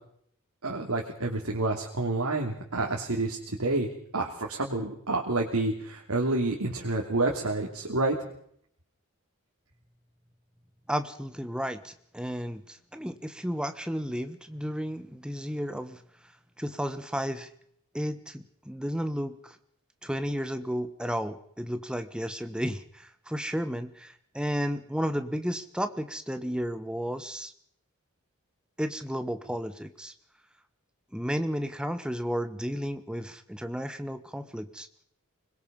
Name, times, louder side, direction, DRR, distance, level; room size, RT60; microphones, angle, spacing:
voice 1, 0.6-8.2, right 2 dB, 85° right, -1 dB, 3.2 m, -29 dB
voice 2, 10.9-16.0 16.6-17.5 17.9-19.6 20.0-27.5 28.8-30.1 31.1-34.9, equal, 5° right, 9 dB, 1.4 m, -33 dB
25.0 x 21.5 x 5.4 m, 0.67 s
head